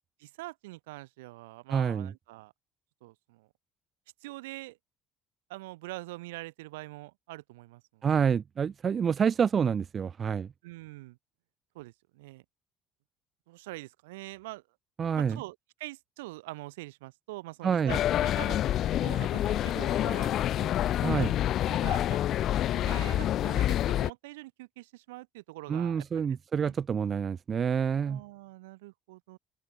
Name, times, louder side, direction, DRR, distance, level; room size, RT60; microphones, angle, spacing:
voice 1, 0.2-2.5 3.0-3.5 4.2-4.8 5.5-8.3 10.6-11.2 11.7-12.4 13.5-14.6 15.1-18.6 19.0-20.7 21.1-21.3 21.7-22.2 22.7-26.4 26.6-26.7 28.0-29.4, right 20 dB, 75° right, 4.7 m, -44 dB
voice 2, 1.7-2.1 8.0-10.5 15.0-15.4 17.6-18.0 21.0-21.3 25.7-28.2, right 7 dB, 40° right, 1.9 m, -28 dB
sound 1, 17.9-24.1, left 12 dB, 55° left, 0.3 m, -27 dB
open air
hypercardioid pair, 55°, 0 cm